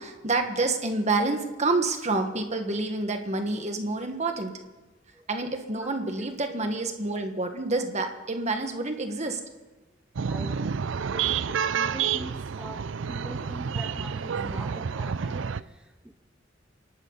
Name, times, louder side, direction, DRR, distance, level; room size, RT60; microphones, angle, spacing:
voice 1, 0.0-4.5 5.3-9.4, right 3 dB, 35° right, 5 dB, 1.6 m, -28 dB
sound 1, 10.2-15.6, right 7 dB, 75° right, 0.5 m, -29 dB
voice 2, 10.3-16.1, equal, 5° right, 4 dB, 0.7 m, -43 dB
28.0 x 12.0 x 4.1 m, 1.2 s
head